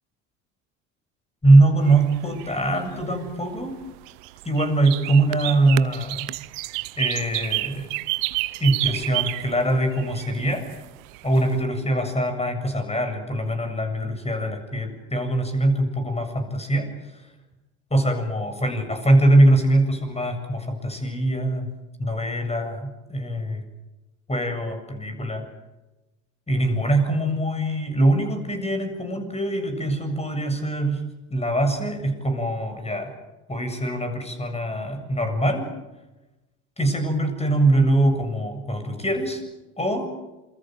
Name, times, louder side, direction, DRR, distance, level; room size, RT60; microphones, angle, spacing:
voice 1, 1.4-3.8 4.4-6.3 7.0-7.9 8.6-10.7 11.2-17.3 17.9-21.7 22.0-23.6 24.3-25.4 26.5-31.0 31.3-33.1 33.5-35.7 36.8-39.4 39.8-40.1, right 1 dB, 15° left, 7 dB, 7.5 m, -22 dB
sound 1, 1.8-11.6, right 24 dB, 65° right, 0.8 m, -31 dB
27.5 x 24.0 x 7.7 m, 1.1 s
hypercardioid pair, 65°, 42 cm